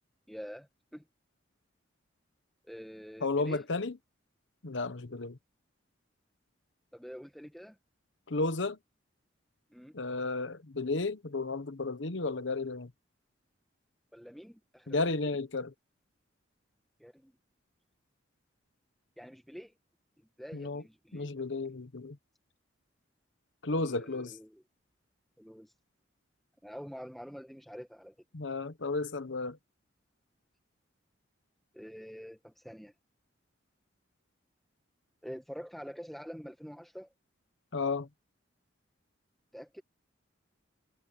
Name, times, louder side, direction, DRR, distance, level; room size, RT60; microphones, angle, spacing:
voice 1, 0.3-1.0 2.6-3.6 6.9-7.8 9.7-10.0 14.1-15.3 17.0-17.3 19.2-19.7 20.4-21.3 23.7-24.6 25.4-25.7 26.6-28.1 31.7-32.9 35.2-37.1 39.5-39.8, equal, ahead, 1.3 m, -46 dB
voice 2, 3.2-4.0 4.6-5.4 8.3-8.8 9.9-12.9 14.9-15.7 20.5-20.8 21.1-22.2 23.6-24.3 28.3-29.6 37.7-38.1, left 3 dB, 70° left, 1.0 m, -33 dB
head